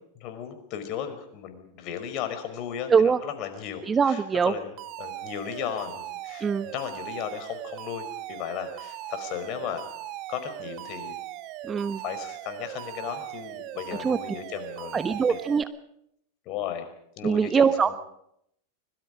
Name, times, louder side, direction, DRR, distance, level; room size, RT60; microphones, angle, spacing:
voice 1, 0.1-4.7 5.0-9.8 10.3-11.2 12.0-15.4 16.4-16.9 17.2-18.0, left 9 dB, 45° left, 8 dB, 4.7 m, -35 dB
voice 2, 3.9-4.5 6.4-6.7 11.6-12.0 14.0-14.2 14.9-15.7 17.2-17.9, right 6 dB, 20° right, 12 dB, 1.1 m, -22 dB
Alarm, 4.8-15.6, right 13 dB, 45° right, 1.7 m, -39 dB
24.5 x 23.0 x 5.1 m, 0.75 s
hypercardioid pair, 95°, 0 cm